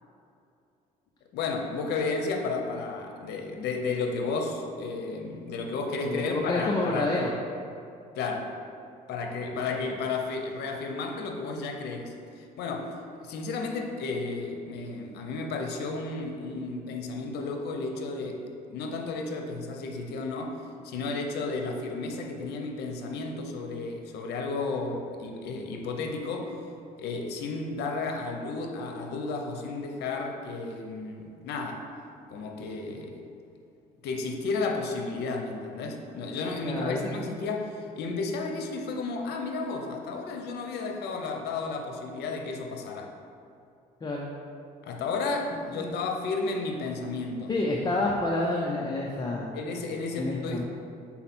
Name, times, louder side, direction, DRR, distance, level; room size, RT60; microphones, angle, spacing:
voice 1, 1.3-7.3 8.1-8.5 9.1-12.9 13.2-26.6 27.0-31.8 32.3-33.2 34.0-43.1 44.8-47.5 49.5-50.6, left 3 dB, 75° left, 3 dB, 0.8 m, -33 dB
voice 2, 6.0-7.3 36.6-37.0 44.0-44.3 45.8-46.0 47.5-49.5 50.2-50.6, left 2 dB, 25° left, -2 dB, 0.6 m, -28 dB
5.6 x 4.2 x 4.3 m, 2.6 s
cardioid pair, 110°, 17 cm